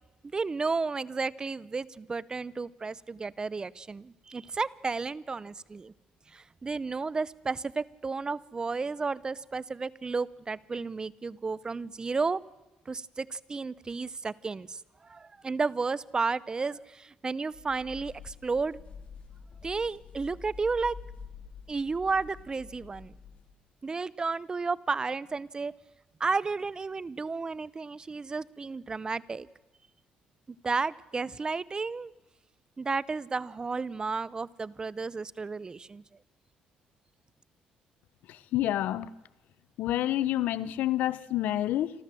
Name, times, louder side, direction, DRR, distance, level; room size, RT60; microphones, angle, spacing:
voice 1, 0.3-5.9 6.3-12.4 12.9-18.8 19.6-20.9 21.7-23.1 23.8-25.7 26.2-29.5 30.6-32.1 32.8-36.0, right 4 dB, 25° right, 21 dB, 0.7 m, -32 dB
Rascarse Cabeza, 17.5-23.5, left 5 dB, 45° left, 3.6 m, -47 dB
voice 2, 38.5-39.1 39.8-41.9, left 13 dB, 75° left, 19 dB, 0.9 m, -28 dB
27.0 x 13.0 x 7.6 m, 1.1 s
cardioid pair, 85°, 3 cm